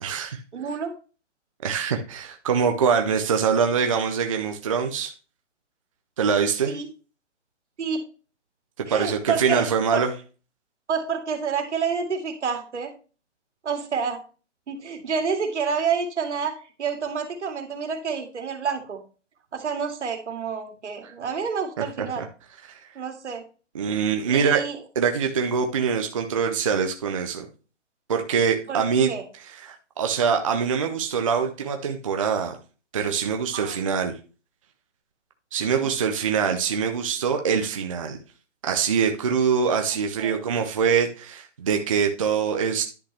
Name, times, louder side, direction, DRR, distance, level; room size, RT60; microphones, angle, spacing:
voice 1, 0.0-0.4 1.6-5.1 6.2-6.8 8.8-10.1 21.0-21.1 21.8-22.2 22.6-22.9 23.7-24.6 25.0-27.5 28.1-32.6 32.9-34.1 35.5-38.2 38.6-42.8, right 6 dB, 30° right, 4 dB, 0.5 m, -24 dB
voice 2, 0.5-0.9 6.7-6.9 7.8-8.0 8.9-10.0 10.9-12.9 13.6-14.2 14.7-19.0 19.5-22.2 23.0-23.4 24.3-24.8 28.7-29.2 33.5-33.8 40.2-40.4, right 6 dB, 70° right, 5 dB, 2.3 m, -28 dB
10.5 x 5.6 x 3.3 m, 0.35 s
hypercardioid pair, 160°, 36 cm